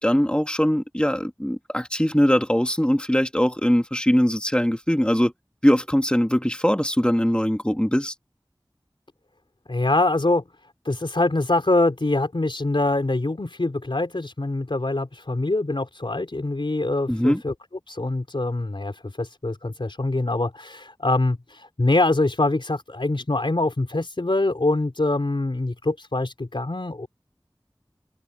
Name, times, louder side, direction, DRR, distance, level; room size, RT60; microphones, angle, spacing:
voice 1, 0.0-5.3 5.6-8.1 17.1-17.4, equal, 10° left, 2.1 m, -21 dB
voice 2, 9.7-10.4 10.8-17.5 17.9-27.1, left 2 dB, 80° left, 4.0 m, -24 dB
wide cardioid pair, 40°, 9 cm